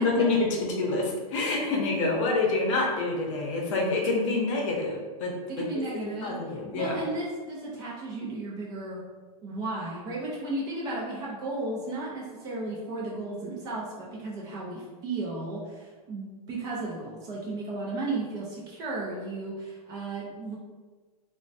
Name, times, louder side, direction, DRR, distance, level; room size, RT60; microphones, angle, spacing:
voice 1, 0.0-7.0, left 3 dB, 50° left, -1 dB, 0.7 m, -27 dB
voice 2, 5.5-9.0 9.4-20.6, right 2 dB, 20° right, -4 dB, 0.3 m, -34 dB
3.0 x 2.1 x 2.6 m, 1.4 s
supercardioid pair, 155°, 20 cm